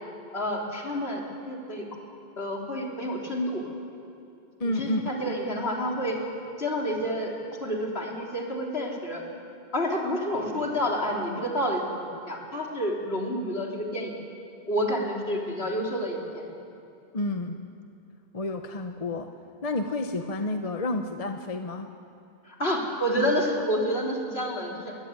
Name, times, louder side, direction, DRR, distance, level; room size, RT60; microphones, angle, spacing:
voice 1, 0.3-1.9 2.4-3.6 4.6-6.2 6.6-7.3 7.6-9.2 9.7-11.8 12.3-14.1 14.7-16.5 22.5-24.8, equal, 75° left, -1 dB, 3.8 m, -29 dB
voice 2, 4.6-5.1 17.1-17.6 18.3-19.3 19.6-21.9, left 2 dB, 35° left, 5 dB, 1.1 m, -30 dB
23.0 x 16.0 x 9.7 m, 2.6 s
omnidirectional pair, 1.1 m